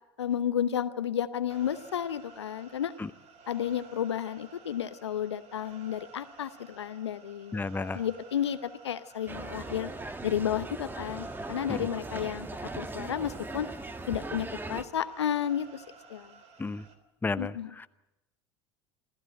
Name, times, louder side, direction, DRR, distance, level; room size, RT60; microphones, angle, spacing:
voice 1, 0.2-2.9 3.5-7.6 7.9-9.9 10.2-12.5 12.7-13.7 14.1-15.8 16.1-16.3 17.4-17.7, left 9 dB, 80° left, 13 dB, 0.9 m, -32 dB
sound 1, 1.5-16.9, right 5 dB, 50° right, 3.3 m, -53 dB
voice 2, 7.5-8.0 11.7-11.9 16.6-16.8 17.2-17.5, left 3 dB, 15° left, 12 dB, 0.9 m, -31 dB
sound 2, 9.3-14.8, right 2 dB, 15° right, 1.6 m, -39 dB
27.0 x 15.0 x 7.7 m, 0.95 s
hypercardioid pair, 75°, 14 cm